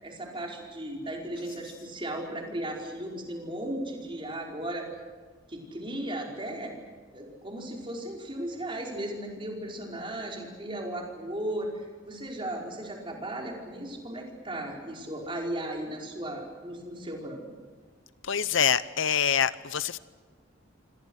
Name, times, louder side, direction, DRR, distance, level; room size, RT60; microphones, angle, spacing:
voice 1, 0.0-4.9 5.5-6.7 7.1-17.5, right 1 dB, 25° right, 5.0 m, -36 dB
voice 2, 18.2-20.0, left 8 dB, 65° left, 0.7 m, -25 dB
28.5 x 25.5 x 6.5 m
head